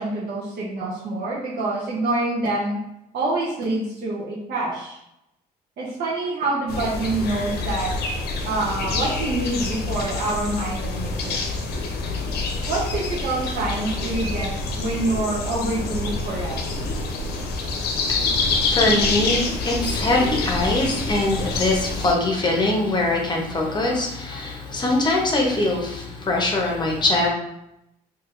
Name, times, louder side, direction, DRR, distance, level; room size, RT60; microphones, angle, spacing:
voice 1, 0.0-2.8 3.1-5.0 5.8-7.9 8.4-11.4 12.6-16.7, right 2 dB, 70° right, -6 dB, 0.9 m, -26 dB
sound 1, 6.7-22.1, left 3 dB, 70° left, 0.7 m, -27 dB
voice 2, 18.0-27.3, left 2 dB, 25° left, 0 dB, 0.8 m, -22 dB
4.4 x 2.8 x 2.5 m, 0.85 s
cardioid pair, 110°, 17 cm